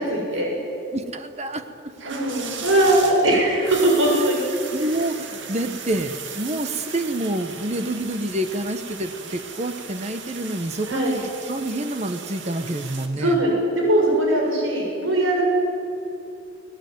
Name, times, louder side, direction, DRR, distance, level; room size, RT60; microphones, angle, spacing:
voice 1, 0.1-0.6 2.0-4.4 10.9-11.1 13.2-15.4, right 1 dB, 90° right, -1 dB, 7.5 m, -20 dB
voice 2, 0.9-2.5 4.0-4.2 4.7-13.4, right 1 dB, 35° right, 9 dB, 1.0 m, -28 dB
sound 1, 1.9-13.1, right 5 dB, 65° right, 2.4 m, -36 dB
23.0 x 19.0 x 9.4 m, 2.6 s
head